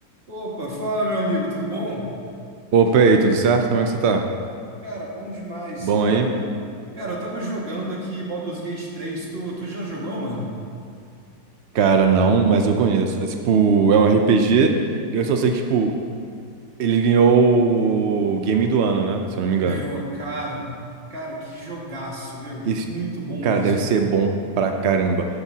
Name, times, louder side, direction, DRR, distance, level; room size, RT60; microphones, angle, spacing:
voice 1, 0.3-2.0 4.8-6.4 7.0-10.5 19.6-20.7 21.1-23.9, right 1 dB, 35° right, -4 dB, 2.1 m, -30 dB
voice 2, 2.7-4.3 5.8-6.3 11.7-14.8 15.1-15.9 16.8-19.8 22.6-22.9 23.4-25.3, right 5 dB, 75° right, 4 dB, 0.6 m, -18 dB
13.0 x 11.5 x 2.8 m, 2.4 s
omnidirectional pair, 1.9 m